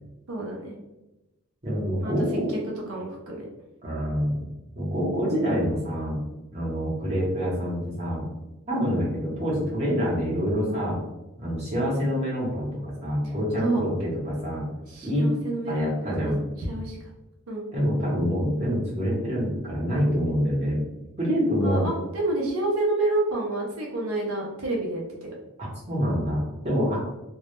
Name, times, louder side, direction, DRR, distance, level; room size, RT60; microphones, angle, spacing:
voice 1, 0.3-0.7 2.0-2.1 2.5-2.6 2.9-3.5 13.6-13.8 14.9-16.3 16.6-17.1 17.5-17.7 21.6-25.3, right 2 dB, 75° right, -2 dB, 0.5 m, -29 dB
voice 2, 1.6-2.5 3.8-4.4 4.8-6.2 6.5-8.3 8.7-11.0 11.4-14.7 15.0-15.3 15.7-16.4 17.7-20.8 21.2-21.9 25.6-27.0, equal, 30° right, -6 dB, 0.7 m, -26 dB
2.1 x 2.0 x 2.9 m, 1.0 s
head